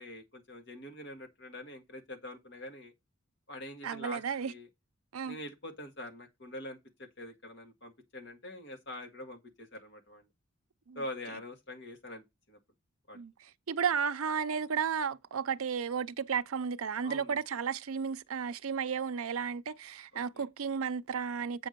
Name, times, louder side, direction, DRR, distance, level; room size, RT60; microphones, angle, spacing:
voice 1, 0.0-2.9 3.5-4.7 5.2-10.3 11.0-12.6 13.1-13.2 17.0-17.4 20.1-20.4, left 1 dB, 55° left, 2.0 m, -45 dB
voice 2, 3.8-4.5 5.1-5.4 10.9-11.0 13.1-13.3 13.7-21.7, right 6 dB, 80° right, 0.6 m, -33 dB
8.3 x 5.1 x 5.3 m
head